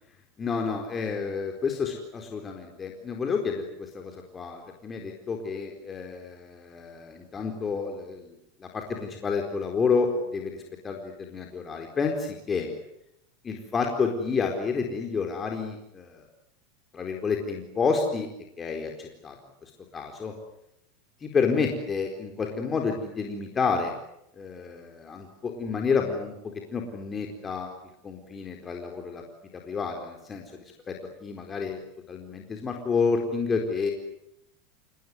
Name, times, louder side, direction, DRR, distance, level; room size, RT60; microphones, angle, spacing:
voice 1, 0.4-8.4 8.6-12.7 13.4-16.2 16.9-18.3 18.6-19.4 19.9-20.3 21.2-23.9 24.4-27.7 28.0-29.2 29.5-30.4 30.9-31.0 31.2-33.9, left 5 dB, 25° left, 2 dB, 4.3 m, -29 dB
27.5 x 19.5 x 9.7 m, 0.80 s
supercardioid pair, 115°, 0 cm